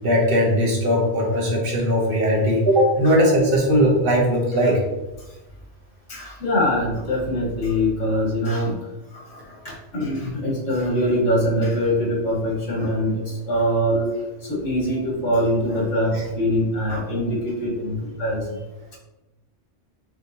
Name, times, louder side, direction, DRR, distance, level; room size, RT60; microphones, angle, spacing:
voice 1, 0.0-4.8, equal, 55° right, -1 dB, 1.0 m, -19 dB
voice 2, 6.1-8.8 9.1-14.1 14.5-18.6, equal, 85° left, -3 dB, 1.6 m, -23 dB
4.6 x 3.3 x 2.7 m, 1.1 s
omnidirectional pair, 1.2 m